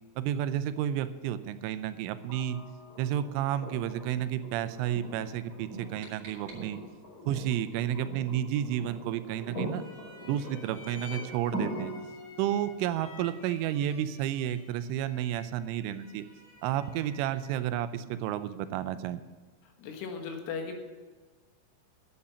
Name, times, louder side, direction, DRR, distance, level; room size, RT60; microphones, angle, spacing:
voice 1, 0.2-2.6 3.0-6.8 7.3-11.9 12.4-16.2 16.6-19.2, right 11 dB, 90° right, 12 dB, 3.2 m, -31 dB
sound 1, 2.3-16.2 18.0-18.1, right 1 dB, 20° left, 3.5 m, -43 dB
sound 2, 5.5-7.2, right 3 dB, 50° right, 4.2 m, -53 dB
sound 3, 9.6-17.7, left 3 dB, 40° left, 4.5 m, -51 dB
voice 2, 19.8-20.9, left 5 dB, 80° left, 4 dB, 3.9 m, -37 dB
12.0 x 8.6 x 6.9 m, 1.4 s
omnidirectional pair, 5.6 m